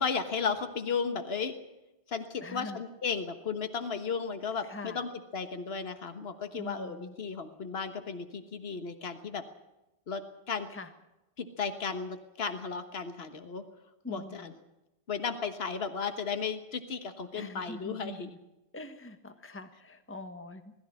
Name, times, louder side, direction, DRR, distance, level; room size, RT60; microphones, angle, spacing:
voice 1, 0.0-1.5 2.1-9.4 10.1-10.7 11.4-13.6 14.1-14.5 15.1-18.3, left 5 dB, 70° left, 8 dB, 1.6 m, -34 dB
voice 2, 2.4-2.8 4.6-5.0 6.5-7.2 10.7-10.9 14.0-14.5 17.3-18.4 18.7-20.7, left 2 dB, 10° left, 8 dB, 1.3 m, -44 dB
21.0 x 14.0 x 9.8 m, 0.97 s
omnidirectional pair, 1.1 m